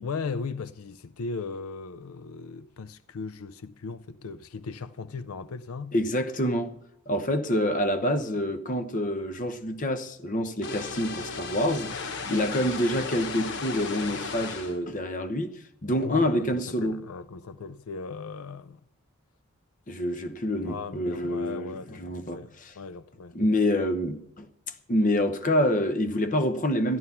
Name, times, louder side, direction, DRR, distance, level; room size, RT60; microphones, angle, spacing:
voice 1, 0.0-5.9 15.9-18.8 20.6-23.4, left 4 dB, 85° left, 0.5 m, -37 dB
voice 2, 5.9-6.8 7.1-11.9 12.3-15.6 15.8-17.0 19.9-22.7 23.3-24.5 24.9-27.0, left 1 dB, 40° left, 1.0 m, -27 dB
sound 1, 10.6-14.8, left 4 dB, 55° left, 1.2 m, -35 dB
13.0 x 11.0 x 5.7 m
head